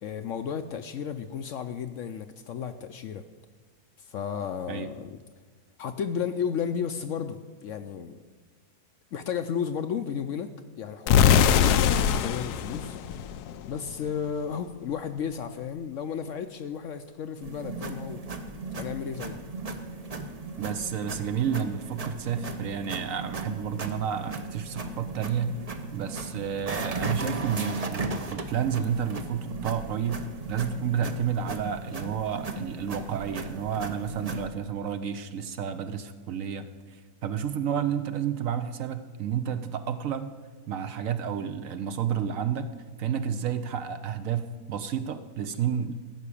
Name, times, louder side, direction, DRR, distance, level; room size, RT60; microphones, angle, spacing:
voice 1, 0.0-3.2 4.0-5.2 5.8-8.2 9.1-13.0 13.6-18.2 18.7-19.4, left 7 dB, 65° left, 9 dB, 0.8 m, -33 dB
sound 1, 11.1-13.9, left 8 dB, 85° left, 1.2 m, -22 dB
sound 2, 17.4-34.5, right 3 dB, 35° right, 0.6 m, -36 dB
voice 2, 20.6-25.6 25.9-40.3 40.7-42.7 43.0-45.9, right 8 dB, 65° right, 10 dB, 1.0 m, -31 dB
15.0 x 6.1 x 8.4 m, 1.5 s
omnidirectional pair, 1.7 m